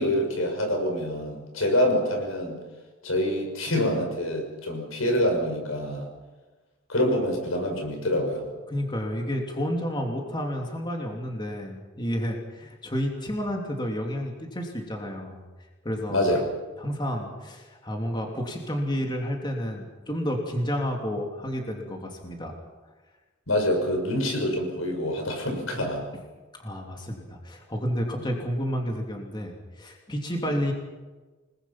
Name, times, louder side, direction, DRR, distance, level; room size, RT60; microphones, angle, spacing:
voice 1, 0.0-2.6 3.0-6.1 6.9-8.5 16.1-16.4 23.5-26.1 30.4-30.5, left 1 dB, 85° left, 3 dB, 6.2 m, -26 dB
voice 2, 8.7-15.4 15.8-16.4 16.8-22.5 25.7-25.9 26.6-30.7, equal, 20° left, 1 dB, 2.9 m, -30 dB
29.0 x 20.5 x 5.9 m, 1.3 s
head